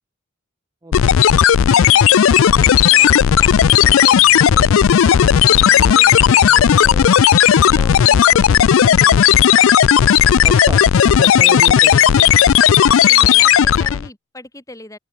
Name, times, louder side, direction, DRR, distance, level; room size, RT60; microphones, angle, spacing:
voice 1, 0.8-1.1 10.2-12.3, right 2 dB, 20° right, 0.6 m, -32 dB
sound 1, 0.9-14.1, left 9 dB, 75° left, 0.4 m, -12 dB
voice 2, 1.6-7.4 7.7-9.5 11.3-11.7 12.8-15.0, left 1 dB, 15° left, 7.9 m, -38 dB
sound 2, 2.1-13.7, equal, 60° right, 6.4 m, -48 dB
open air
head